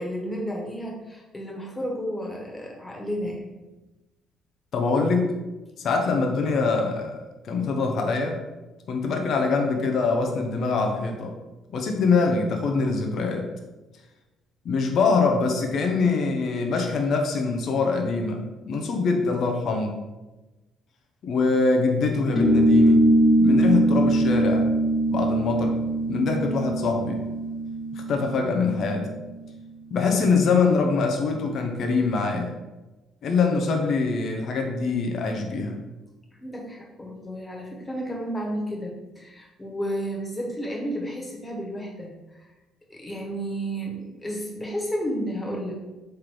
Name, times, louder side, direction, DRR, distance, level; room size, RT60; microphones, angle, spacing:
voice 1, 0.0-3.4 15.8-16.0 23.4-23.8 36.4-42.5 42.9-45.8, equal, 20° left, -1 dB, 1.4 m, -32 dB
voice 2, 4.7-5.3 5.8-7.2 7.4-8.4 8.9-11.3 11.7-13.5 14.6-19.9 21.2-23.1 23.4-24.7 25.1-25.8 26.1-27.3 27.9-29.2 29.9-32.5 33.2-35.8, left 4 dB, 60° left, 2 dB, 0.7 m, -24 dB
sound 1, 22.4-29.3, right 1 dB, 40° left, 1.3 m, -22 dB
3.6 x 3.3 x 4.4 m, 1.1 s
hypercardioid pair, 55°, 0 cm